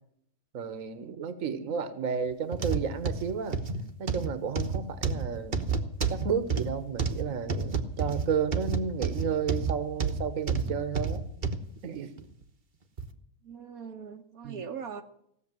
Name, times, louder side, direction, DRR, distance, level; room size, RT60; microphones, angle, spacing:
voice 1, 0.5-3.6 4.0-11.2 11.8-12.1 14.4-14.6, right 7 dB, 70° right, 12 dB, 1.5 m, -32 dB
sound 1, 2.5-11.6 12.2-12.3 13.0-13.1, right 4 dB, 35° right, 1.1 m, -30 dB
voice 2, 13.4-15.0, right 6 dB, 85° right, 4 dB, 1.5 m, -40 dB
16.5 x 6.9 x 9.0 m, 0.71 s
omnidirectional pair, 1.5 m